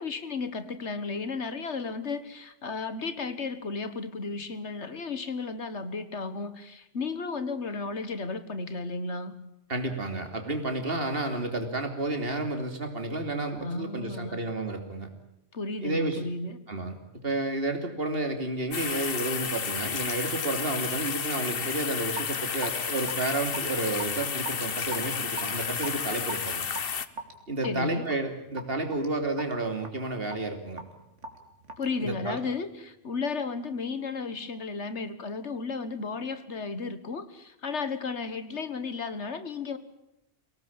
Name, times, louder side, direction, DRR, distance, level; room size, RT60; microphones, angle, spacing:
voice 1, 0.0-9.3 13.6-14.4 15.5-16.6 27.6-28.1 31.8-39.8, left 4 dB, 70° left, 12 dB, 1.9 m, -34 dB
voice 2, 9.7-15.1 15.8-16.3 16.7-16.9 17.2-26.7 27.5-30.8 32.0-32.4, right 2 dB, 55° right, 6 dB, 3.2 m, -31 dB
sound 1, 18.7-27.1, left 6 dB, 55° left, 1.2 m, -32 dB
Raindrop / Drip, 22.1-32.6, right 2 dB, 85° right, 3.0 m, -43 dB
23.5 x 18.0 x 8.8 m, 0.85 s
omnidirectional pair, 1.2 m